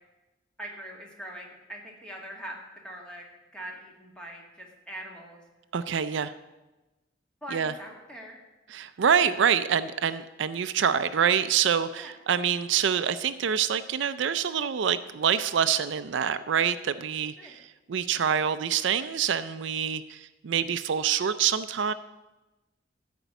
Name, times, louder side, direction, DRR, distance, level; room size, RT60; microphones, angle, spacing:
voice 1, 0.6-2.6 2.8-3.2 3.5-5.4 7.4-8.4 10.0-10.2 12.0-12.1 17.4-17.6, right 1 dB, 5° left, -1 dB, 2.0 m, -42 dB
voice 2, 5.7-6.3 7.5-7.7 8.7-21.9, right 8 dB, 70° right, 13 dB, 0.4 m, -26 dB
14.0 x 5.2 x 8.1 m, 1.1 s
head